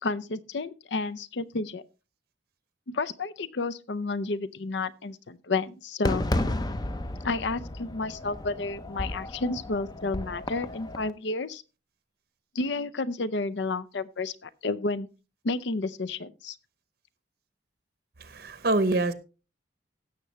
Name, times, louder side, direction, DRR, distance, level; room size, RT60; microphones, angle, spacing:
voice 1, 0.0-1.8 2.9-6.2 7.2-11.6 12.5-15.1 15.4-16.6, left 3 dB, 65° left, 0.6 m, -31 dB
Fireworks, 6.0-11.1, left 1 dB, 20° left, 0.5 m, -33 dB
voice 2, 18.2-19.1, right 2 dB, 55° right, 0.8 m, -25 dB
16.0 x 6.8 x 3.2 m
head